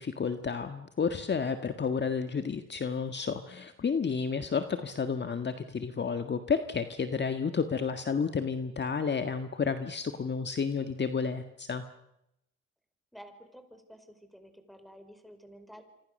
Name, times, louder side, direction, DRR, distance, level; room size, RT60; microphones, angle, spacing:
voice 1, 0.0-11.8, left 5 dB, 35° left, 8 dB, 1.7 m, -31 dB
voice 2, 13.1-15.8, equal, ahead, 8 dB, 4.9 m, -51 dB
27.5 x 26.0 x 6.7 m, 0.84 s
cardioid pair, 90°, 30 cm